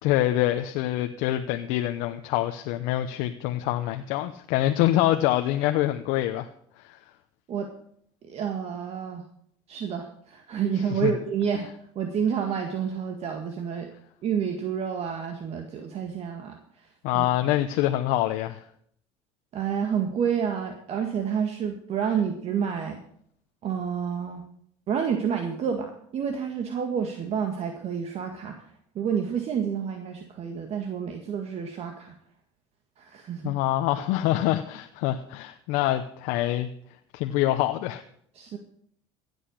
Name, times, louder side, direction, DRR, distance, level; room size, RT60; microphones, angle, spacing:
voice 1, 0.0-6.5 6.8-7.0 10.9-11.1 17.0-18.6 33.4-36.7 37.1-38.0, left 14 dB, 75° left, 7 dB, 0.8 m, -25 dB
voice 2, 8.2-9.2 9.7-11.7 12.0-13.9 14.2-16.9 17.1-17.3 19.5-23.0 23.6-24.4 24.9-28.6 29.0-32.2 33.0-33.5 38.4-38.6, right 7 dB, 50° right, 4 dB, 1.9 m, -29 dB
15.5 x 8.1 x 6.5 m, 0.65 s
supercardioid pair, 95°, 13 cm